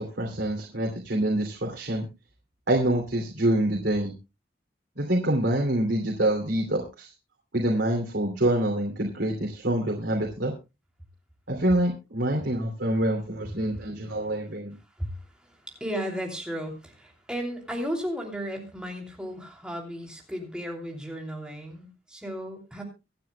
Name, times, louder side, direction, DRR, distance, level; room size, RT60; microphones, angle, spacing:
voice 1, 0.0-2.1 2.7-4.1 4.9-7.1 7.5-10.5 11.5-14.8, right 1 dB, 85° right, 0 dB, 2.8 m, -26 dB
voice 2, 15.0-22.8, equal, 5° right, 1 dB, 2.9 m, -35 dB
24.5 x 9.4 x 2.2 m, 0.27 s
head